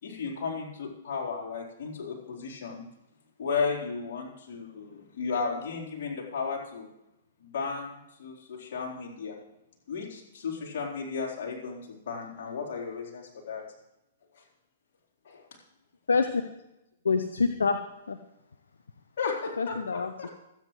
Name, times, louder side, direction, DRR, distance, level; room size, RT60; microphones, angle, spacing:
voice 1, 0.0-2.9 3.4-6.9 7.4-9.4 9.9-13.6 14.4-14.5 15.2-15.4 19.2-20.3, left 5 dB, 55° left, -3 dB, 4.1 m, -34 dB
voice 2, 16.1-16.4 17.0-17.8 18.1-18.2 19.6-20.3, left 4 dB, 75° left, 9 dB, 0.7 m, -26 dB
26.0 x 9.2 x 3.2 m, 0.88 s
figure-of-eight pair, 115°, 0 cm